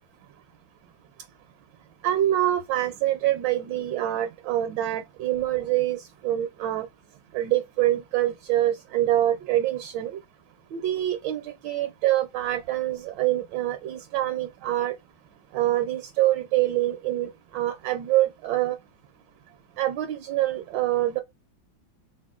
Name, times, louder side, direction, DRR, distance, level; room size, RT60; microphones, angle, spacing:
voice 1, 2.0-6.9 7.3-10.2 10.7-15.0 15.5-18.8 19.8-21.2, right 13 dB, 75° right, 1.2 m, -25 dB
3.9 x 2.2 x 3.6 m
omnidirectional pair, 2.1 m